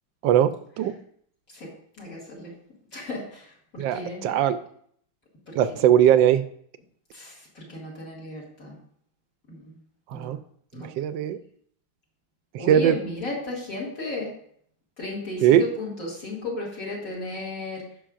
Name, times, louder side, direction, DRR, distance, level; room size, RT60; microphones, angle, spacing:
voice 1, 0.2-0.9 3.8-4.6 5.6-6.4 10.1-10.4 10.8-11.4 12.5-13.0 15.4-15.6, right 10 dB, 75° right, 12 dB, 1.2 m, -20 dB
voice 2, 2.0-2.5 2.9-4.5 5.5-5.8 7.1-8.8 9.5-9.7 10.1-10.3 10.7-10.9 12.6-14.3 15.0-17.8, left 2 dB, 40° left, -5 dB, 2.5 m, -35 dB
16.0 x 5.7 x 2.5 m, 0.63 s
omnidirectional pair, 2.2 m